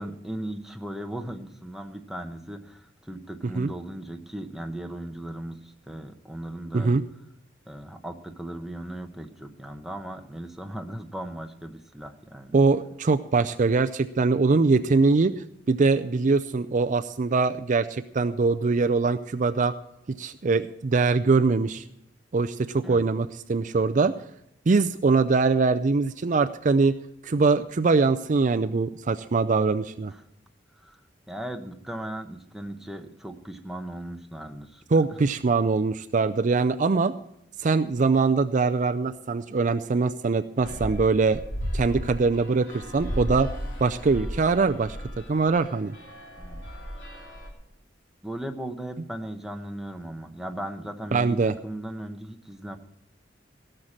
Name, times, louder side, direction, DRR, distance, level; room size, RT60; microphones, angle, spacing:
voice 1, 0.0-6.9 7.7-12.6 22.8-23.0 30.1-30.2 30.8-31.0 31.3-34.8 46.4-46.6 47.1-47.2 48.2-52.8, right 1 dB, ahead, 5 dB, 1.0 m, -37 dB
voice 2, 12.5-15.3 15.7-19.7 20.2-21.8 22.3-24.1 24.7-27.0 27.2-30.1 34.9-37.1 37.6-41.4 41.7-43.5 43.8-45.0 45.3-45.9 51.1-51.5, right 4 dB, 45° right, 9 dB, 0.5 m, -22 dB
sound 1, 40.6-47.5, equal, 75° left, 3.4 m, -35 dB
17.0 x 6.6 x 7.3 m, 0.78 s
head